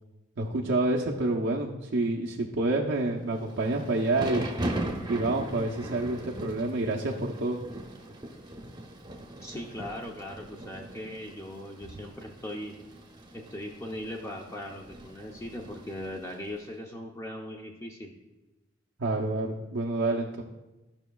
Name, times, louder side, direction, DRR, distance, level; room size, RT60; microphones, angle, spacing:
voice 1, 0.4-4.5 5.1-7.6 19.0-20.4, right 2 dB, 65° right, -2 dB, 0.7 m, -28 dB
Thunder / Rain, 3.4-16.5, right 1 dB, 20° right, 0.9 m, -40 dB
voice 2, 9.4-12.7 13.3-18.1, left 1 dB, 15° left, 0 dB, 0.6 m, -39 dB
13.5 x 5.9 x 2.3 m, 1.1 s
head